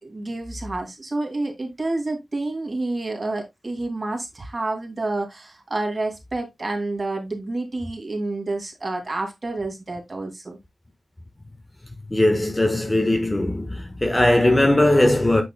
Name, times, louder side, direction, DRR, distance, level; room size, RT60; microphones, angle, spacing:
voice 1, 0.0-10.6, right 2 dB, 40° right, 2.6 m, -29 dB
voice 2, 12.1-15.4, left 1 dB, 20° left, 1.3 m, -19 dB
8.2 x 6.1 x 2.2 m
wide cardioid pair, 75°, 0 cm